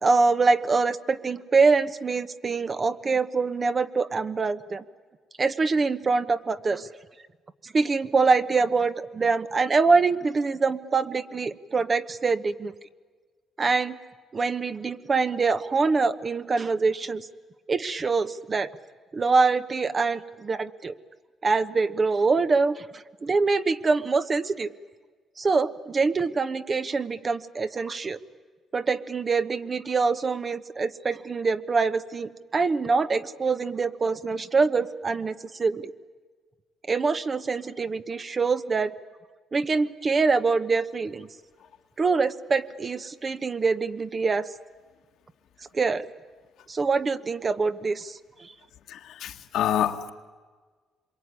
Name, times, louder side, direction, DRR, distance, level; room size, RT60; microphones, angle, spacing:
voice 1, 0.0-4.8 5.4-6.9 7.6-12.7 13.6-14.0 14.3-17.3 17.7-18.7 19.1-20.9 21.4-24.7 25.4-28.2 28.7-35.9 36.9-38.9 39.5-41.3 42.0-44.5 45.7-46.1 46.7-48.5, right 4 dB, 35° right, 11 dB, 1.1 m, -24 dB
voice 2, 48.9-50.1, left 10 dB, 80° left, 5 dB, 1.8 m, -27 dB
26.5 x 23.0 x 9.8 m, 1.5 s
cardioid pair, 90°, 0 cm